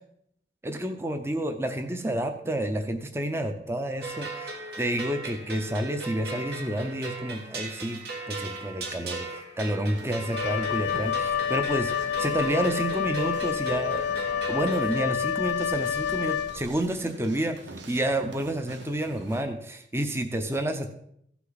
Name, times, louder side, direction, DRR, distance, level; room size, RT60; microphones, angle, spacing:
voice 1, 0.6-8.0 8.3-11.9 12.2-14.0 14.5-17.6 17.9-20.9, right 1 dB, 15° right, 6 dB, 0.7 m, -29 dB
sound 1, 4.0-15.1, right 2 dB, 60° right, 1.6 m, -38 dB
sound 2, 9.9-19.4, right 2 dB, 85° right, 1.1 m, -47 dB
Wind instrument woodwind instrument, 10.3-16.9, left 8 dB, 80° left, 0.4 m, -28 dB
15.0 x 5.9 x 4.0 m, 0.72 s
head